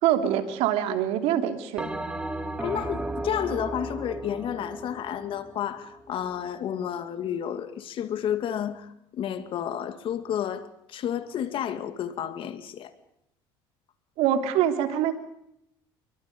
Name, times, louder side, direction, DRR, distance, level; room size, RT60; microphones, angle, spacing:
voice 1, 0.0-1.9 14.2-15.1, right 10 dB, 70° right, 3.1 m, -24 dB
Bell, 1.8-6.4, right 1 dB, 10° right, 2.8 m, -35 dB
voice 2, 2.6-12.9, left 9 dB, 55° left, 2.3 m, -31 dB
28.0 x 24.0 x 5.4 m
supercardioid pair, 95°, 11 cm